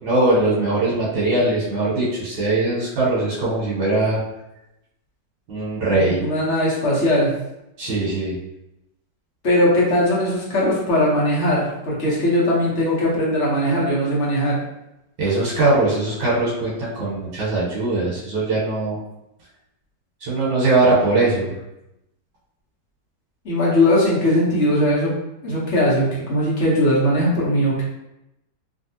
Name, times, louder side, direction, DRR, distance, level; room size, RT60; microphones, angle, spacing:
voice 1, 0.0-4.2 5.5-6.2 7.8-8.4 15.2-19.0 20.2-21.5, right 2 dB, 85° right, -6 dB, 1.6 m, -20 dB
voice 2, 5.9-7.3 9.4-14.6 23.4-25.1 25.4-27.8, left 1 dB, 50° left, -6 dB, 1.1 m, -19 dB
3.4 x 2.6 x 2.7 m, 0.89 s
omnidirectional pair, 1.9 m